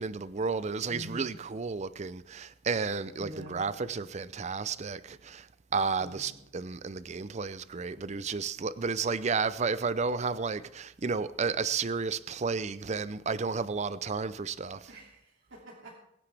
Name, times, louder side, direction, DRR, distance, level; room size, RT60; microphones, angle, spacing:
voice 1, 0.0-14.9, right 5 dB, 35° right, 0.5 m, -32 dB
voice 2, 0.9-1.3 3.2-3.7 6.0-6.4 14.9-15.9, equal, 85° right, 2.7 m, -46 dB
22.5 x 9.8 x 3.4 m
head